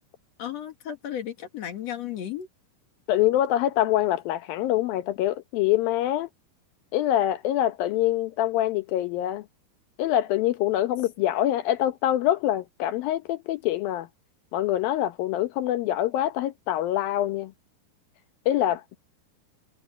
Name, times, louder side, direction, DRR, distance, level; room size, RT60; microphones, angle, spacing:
voice 1, 0.4-2.5, left 10 dB, 55° left, 2.1 m, -34 dB
voice 2, 3.1-6.3 6.9-9.5 10.0-14.1 14.5-17.5 18.5-19.0, left 13 dB, 70° left, 2.6 m, -25 dB
omnidirectional pair, 4.6 m